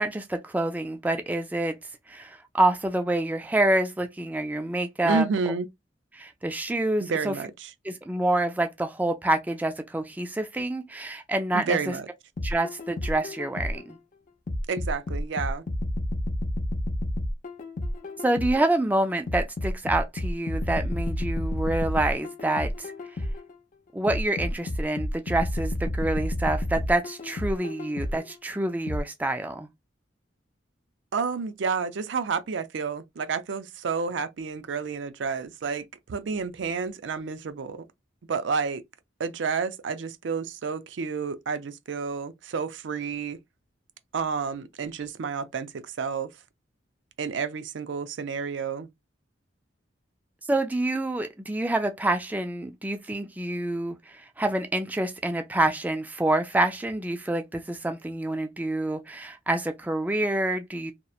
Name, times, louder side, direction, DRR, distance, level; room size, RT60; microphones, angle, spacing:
voice 1, 0.0-1.8 2.1-5.2 6.1-7.4 7.8-11.9 12.4-14.0 18.2-22.9 23.9-29.7 50.5-60.9, right 1 dB, 10° right, 0.3 m, -27 dB
voice 2, 5.0-5.7 7.0-7.7 11.5-12.1 14.7-15.6 31.1-37.8 38.3-38.8 39.2-43.4 44.1-46.3 47.2-48.9, right 5 dB, 75° right, 0.4 m, -30 dB
sound 1, 12.4-13.9 14.5-18.7 19.3-23.5 24.1-28.3 28.9-29.0, left 1 dB, 45° left, 0.5 m, -30 dB
2.8 x 2.1 x 2.3 m
head